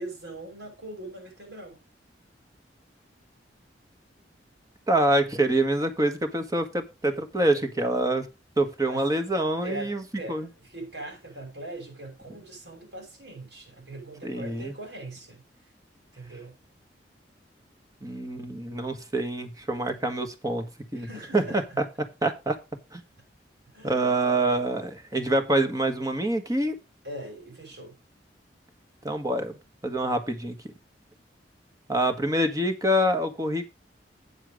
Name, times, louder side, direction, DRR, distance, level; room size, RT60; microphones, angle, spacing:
voice 1, 0.0-1.8 8.9-9.1 9.6-15.4 16.1-16.5 20.9-21.6 23.7-24.1 27.0-28.0, right 1 dB, 75° right, 5.8 m, -41 dB
voice 2, 4.9-8.3 8.6-10.0 10.3-10.5 14.2-14.7 18.0-21.1 21.3-21.8 22.2-22.6 22.9-23.0 23.8-26.8 29.0-29.6 29.8-30.7 31.9-33.7, right 1 dB, 20° right, 1.5 m, -26 dB
8.4 x 7.2 x 5.0 m
head